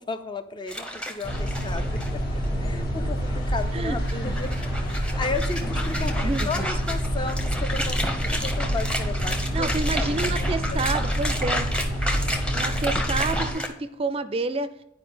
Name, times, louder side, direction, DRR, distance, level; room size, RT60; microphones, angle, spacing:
voice 1, 0.0-2.2 2.6-4.5 4.8-9.7 10.1-10.8, left 3 dB, 25° left, 10 dB, 0.5 m, -34 dB
sound 1, 0.7-2.1 2.4-2.5 3.6-13.7, equal, 5° left, 0.9 m, -31 dB
sound 2, 1.2-13.5, equal, 55° left, 1.8 m, -27 dB
voice 2, 6.0-6.7 9.5-11.7 12.5-14.7, right 3 dB, 30° right, 12 dB, 0.4 m, -29 dB
9.6 x 5.0 x 3.9 m, 0.83 s
head